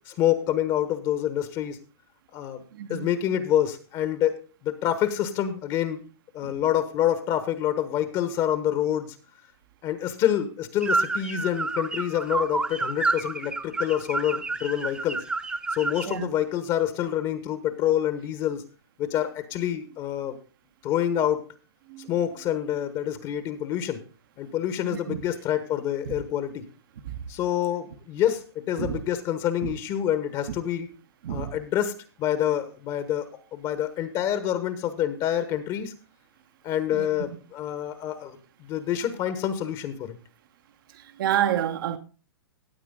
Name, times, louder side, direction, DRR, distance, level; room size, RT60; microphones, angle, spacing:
voice 1, 0.1-1.8 2.3-2.6 2.9-6.0 6.3-9.2 9.8-15.2 15.7-18.6 19.0-20.4 20.8-21.5 22.1-24.0 24.4-26.7 27.3-30.9 31.3-35.9 36.6-40.2, left 11 dB, 30° left, 1.2 m, -27 dB
voice 2, 2.7-3.1 6.4-6.6 16.0-16.3 21.9-22.1 24.9-25.2 26.0-26.1 27.0-27.2 28.8-29.0 29.6-29.7 31.2-31.6 36.9-37.4 40.9-42.0, right 10 dB, 55° right, 1.1 m, -29 dB
sound 1, 10.8-16.2, right 3 dB, 5° right, 0.9 m, -29 dB
15.5 x 8.3 x 3.8 m
hypercardioid pair, 130°, 13 cm